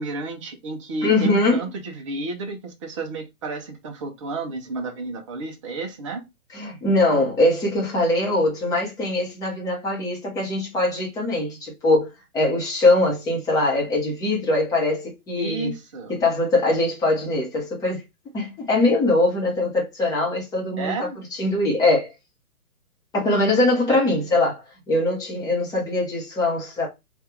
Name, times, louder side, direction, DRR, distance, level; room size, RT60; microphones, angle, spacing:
voice 1, 0.0-6.2 15.4-16.2 20.8-21.2 23.9-24.0, right 3 dB, 20° right, 0.6 m, -31 dB
voice 2, 1.0-1.6 6.5-15.7 16.1-18.0 18.3-21.1 21.4-22.1 23.1-24.6 24.9-26.9, left 2 dB, 10° left, 0.9 m, -22 dB
3.3 x 2.4 x 4.3 m
hypercardioid pair, 140°, 44 cm